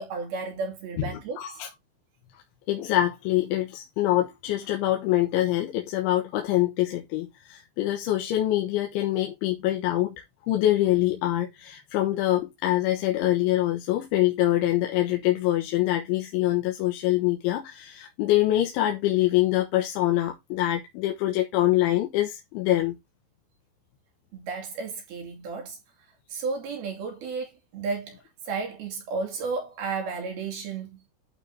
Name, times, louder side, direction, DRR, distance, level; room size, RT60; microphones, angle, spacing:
voice 1, 0.0-1.4 24.3-25.8 26.3-31.0, right 4 dB, 55° right, 4.1 m, -33 dB
voice 2, 1.4-1.7 2.7-10.2 10.4-23.0, left 14 dB, 80° left, 3.5 m, -25 dB
12.0 x 4.5 x 3.6 m
omnidirectional pair, 5.6 m